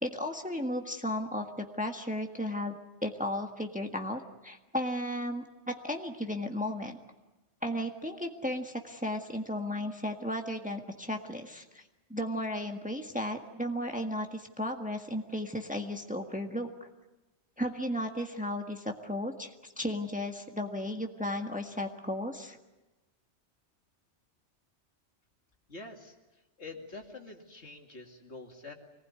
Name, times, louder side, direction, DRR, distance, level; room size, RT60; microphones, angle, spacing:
voice 1, 0.0-7.0 7.6-11.8 12.1-16.9 17.6-22.6, left 1 dB, 5° right, 3 dB, 1.6 m, -35 dB
voice 2, 25.7-28.7, left 3 dB, 70° left, 2 dB, 2.8 m, -46 dB
25.5 x 19.5 x 9.7 m, 1.1 s
omnidirectional pair, 1.2 m